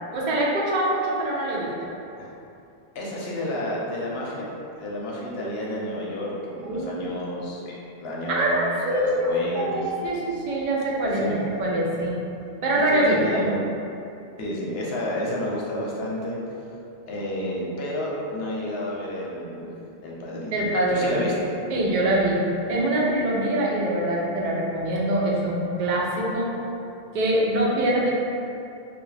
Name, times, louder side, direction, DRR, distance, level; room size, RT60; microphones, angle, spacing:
voice 1, 0.1-1.7 6.6-7.1 8.3-9.3 9.5-12.1 12.6-13.2 20.5-21.2 21.7-22.4 22.7-26.5 27.1-28.1, right 1 dB, 55° right, -4 dB, 0.6 m, -24 dB
voice 2, 2.9-4.5 4.8-9.8 11.1-11.4 12.7-13.7 14.4-16.4 17.1-19.7 20.0-20.6 20.9-21.5, left 1 dB, 75° left, -4 dB, 0.8 m, -30 dB
2.3 x 2.2 x 3.1 m, 2.7 s
omnidirectional pair, 1.1 m